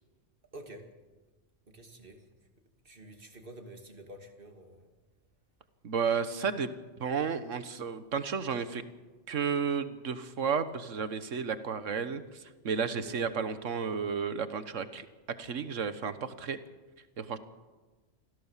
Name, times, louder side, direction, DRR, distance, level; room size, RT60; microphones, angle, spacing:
voice 1, 0.5-0.9 1.7-2.2 2.8-4.9 13.0-13.3, right 1 dB, 45° right, 4 dB, 2.6 m, -48 dB
voice 2, 5.8-6.7 7.0-8.8 9.3-12.2 12.6-15.1 15.4-16.6 17.2-17.4, right 6 dB, 80° right, 11 dB, 1.6 m, -32 dB
26.0 x 16.0 x 7.4 m, 1.3 s
omnidirectional pair, 1.3 m